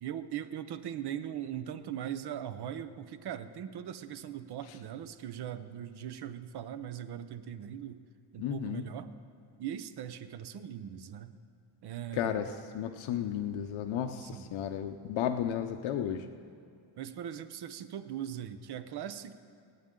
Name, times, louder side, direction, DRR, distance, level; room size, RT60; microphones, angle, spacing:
voice 1, 0.0-8.0 8.3-9.1 9.6-11.4 11.8-12.4 14.1-14.5 17.0-19.3, right 10 dB, 55° right, 11 dB, 0.8 m, -40 dB
voice 2, 8.4-8.8 12.1-12.5 12.7-16.2, left 9 dB, 85° left, 5 dB, 0.8 m, -33 dB
26.5 x 9.6 x 3.8 m, 2.4 s
cardioid pair, 170°, 47 cm